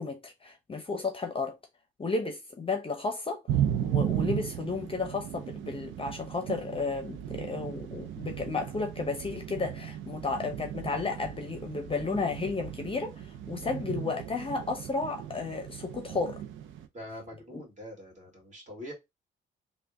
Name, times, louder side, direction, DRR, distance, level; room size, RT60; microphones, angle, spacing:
voice 1, 0.0-1.6 2.0-16.4 17.5-17.6, left 4 dB, 25° left, 0.7 m, -33 dB
sound 1, 3.5-16.9, right 10 dB, 75° right, 0.5 m, -35 dB
voice 2, 16.9-18.9, equal, 35° right, 2.0 m, -44 dB
3.4 x 2.2 x 3.5 m
cardioid pair, 90°, 20 cm